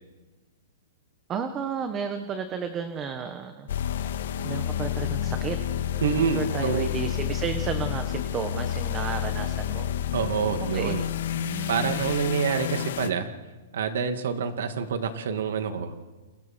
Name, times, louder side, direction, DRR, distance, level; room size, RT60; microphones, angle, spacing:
voice 1, 1.3-3.7 4.0-4.1 4.4-5.6 6.2-9.9 10.7-10.9 11.4-12.1, right 6 dB, 20° right, 7 dB, 1.5 m, -33 dB
sound 1, 3.7-13.1, left 10 dB, 70° left, 1.8 m, -30 dB
voice 2, 6.0-6.9 10.1-11.0 11.7-13.3 13.7-15.9, right 6 dB, 75° right, 6 dB, 2.4 m, -27 dB
30.0 x 30.0 x 4.6 m, 1.2 s
hypercardioid pair, 155°, 0 cm